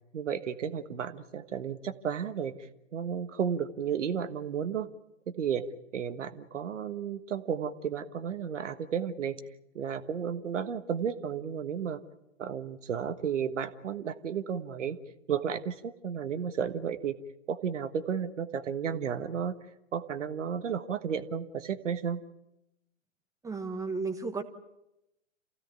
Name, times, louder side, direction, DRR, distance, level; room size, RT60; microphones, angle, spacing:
voice 1, 0.1-4.9 5.3-5.7 5.9-9.4 9.7-12.0 12.4-15.0 15.3-17.2 17.5-19.5 19.9-22.2, right 7 dB, 65° right, 10 dB, 1.5 m, -33 dB
voice 2, 23.4-24.4, right 4 dB, 10° right, 8 dB, 1.3 m, -33 dB
28.0 x 16.0 x 9.2 m, 0.90 s
figure-of-eight pair, 120°, 39 cm